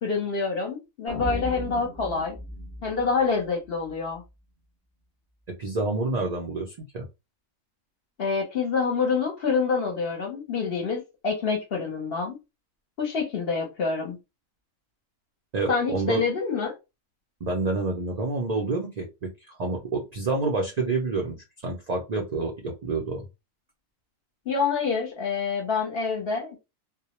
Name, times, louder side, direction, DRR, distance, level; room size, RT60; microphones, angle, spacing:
voice 1, 0.0-2.4 2.8-4.2 8.2-12.4 13.0-14.2 15.7-16.7 24.5-26.6, left 5 dB, 55° left, 2 dB, 0.8 m, -27 dB
sound 1, 1.1-4.2, left 1 dB, 5° left, 0.5 m, -37 dB
voice 2, 5.6-7.1 15.5-16.2 17.4-19.3 19.6-23.2, right 3 dB, 65° right, 0 dB, 0.4 m, -28 dB
2.2 x 2.0 x 2.8 m, 0.25 s
omnidirectional pair, 1.4 m